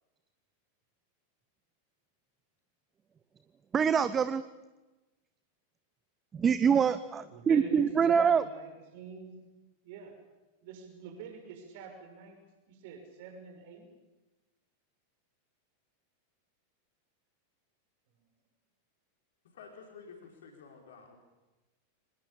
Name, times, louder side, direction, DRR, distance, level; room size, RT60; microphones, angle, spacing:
voice 1, 3.7-4.4 6.3-8.4, right 7 dB, 20° right, 14 dB, 0.9 m, -25 dB
voice 2, 7.3-9.4 9.8-10.1 10.6-12.4 12.7-13.9, right 5 dB, 50° right, 4 dB, 6.3 m, -44 dB
voice 3, 19.5-21.2, left 5 dB, 60° left, 1 dB, 4.9 m, -51 dB
25.5 x 20.0 x 8.8 m, 1.1 s
figure-of-eight pair, 90°, 0 cm